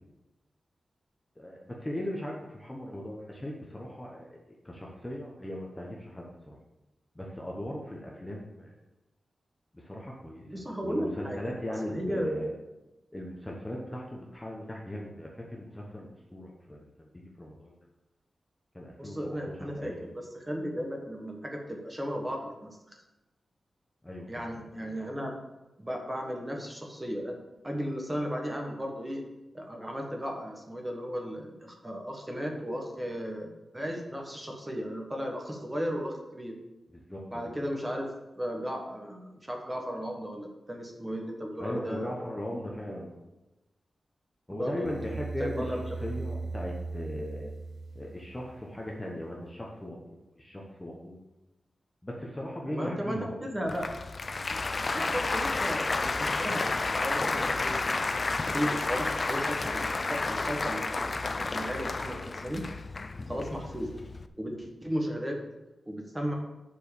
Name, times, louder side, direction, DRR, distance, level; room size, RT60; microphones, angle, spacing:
voice 1, 1.4-6.6 7.1-8.8 9.7-10.5 10.8-12.5 13.1-17.7 18.7-19.4 19.7-20.0 24.0-25.0 36.9-37.5 41.6-43.2 44.5-47.5 47.9-51.2 52.0-53.4 63.1-63.3, left 1 dB, 10° left, -2 dB, 0.9 m, -38 dB
voice 2, 10.4-12.3 19.0-23.0 24.3-25.3 25.8-27.4 27.6-29.2 29.5-36.6 37.3-38.1 38.4-42.3 44.5-44.9 45.4-45.8 52.7-53.9 54.9-56.7 57.0-58.0 58.5-62.6 63.3-63.9 64.4-65.4 65.9-66.3, equal, 10° right, 1 dB, 1.3 m, -35 dB
sound 1, 44.8-48.9, right 3 dB, 65° right, 0.4 m, -38 dB
Applause, 53.7-64.3, left 3 dB, 30° left, 0.4 m, -31 dB
7.4 x 4.6 x 6.9 m, 1.0 s
wide cardioid pair, 180°, 0 cm